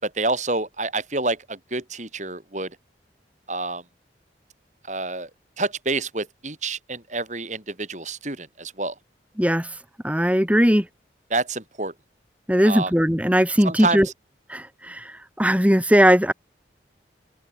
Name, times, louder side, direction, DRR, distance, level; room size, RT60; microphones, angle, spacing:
voice 1, 0.0-2.7 3.5-3.8 4.9-5.3 5.6-8.9 11.3-11.9 12.6-12.9 13.6-14.0, right 3 dB, 40° right, 6.0 m, -28 dB
voice 2, 9.4-9.7 10.0-10.9 12.5-14.1 14.5-16.3, equal, 10° right, 4.3 m, -19 dB
open air
head